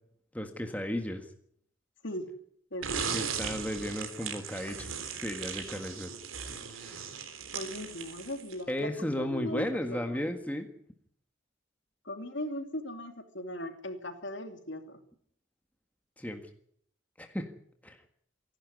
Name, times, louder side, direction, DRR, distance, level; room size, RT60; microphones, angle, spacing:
voice 1, 0.3-1.3 3.1-4.9 5.2-6.1 6.7-7.0 8.7-10.7 16.2-16.4 17.2-17.5 17.8-18.0, left 1 dB, 5° left, 5 dB, 1.7 m, -34 dB
voice 2, 2.7-3.1 7.5-10.2 12.0-15.0, left 1 dB, 65° left, 6 dB, 2.8 m, -38 dB
sound 1, 2.8-8.7, right 6 dB, 85° right, 3.5 m, -38 dB
26.5 x 11.5 x 9.5 m, 0.65 s
head